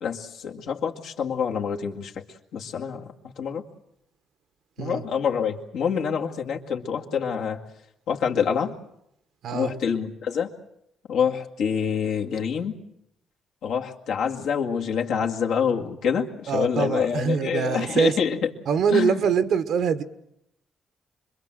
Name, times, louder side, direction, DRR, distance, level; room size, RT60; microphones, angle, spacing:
voice 1, 0.0-2.2 2.5-3.6 4.8-7.6 8.1-8.7 9.5-10.5 11.1-12.8 13.6-18.5 18.9-19.2, left 7 dB, 80° left, 2.1 m, -26 dB
voice 2, 16.5-18.1 18.7-20.0, right 7 dB, 70° right, 1.3 m, -24 dB
25.5 x 22.0 x 7.7 m
cardioid pair, 90°, 0 cm